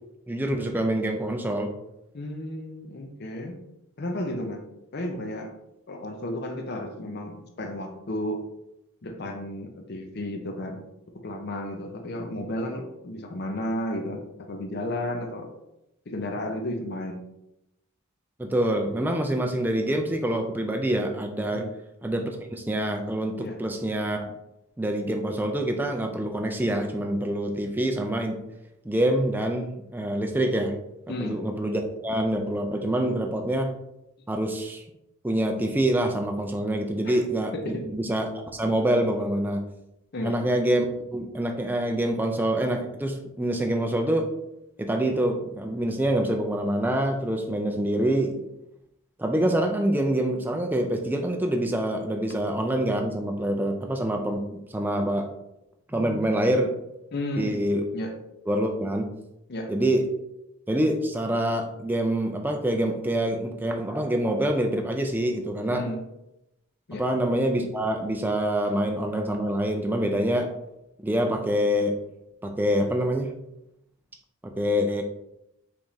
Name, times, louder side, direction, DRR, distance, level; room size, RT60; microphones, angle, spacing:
voice 1, 0.3-1.7 18.4-21.7 22.0-24.3 24.8-28.4 28.8-30.7 31.2-33.7 34.3-34.8 35.2-38.3 38.5-39.6 40.2-44.3 44.8-48.4 49.2-55.3 55.9-56.7 57.3-57.8 58.5-59.1 59.7-60.0 60.7-65.8 66.9-70.5 71.0-71.9 72.4-73.3 74.4-75.0, right 1 dB, 10° right, 3 dB, 0.4 m, -26 dB
voice 2, 2.1-3.6 4.0-4.6 4.9-5.5 5.9-8.4 9.0-10.8 11.2-15.5 16.1-17.3 21.5-21.7 23.4-23.6 31.1-31.4 37.0-37.2 37.5-37.9 40.1-40.4 57.1-57.6 57.9-58.1 59.5-59.7 65.7-66.0 66.9-67.1, left 1 dB, 45° left, 4 dB, 0.6 m, -33 dB
4.8 x 3.5 x 2.7 m, 0.87 s
head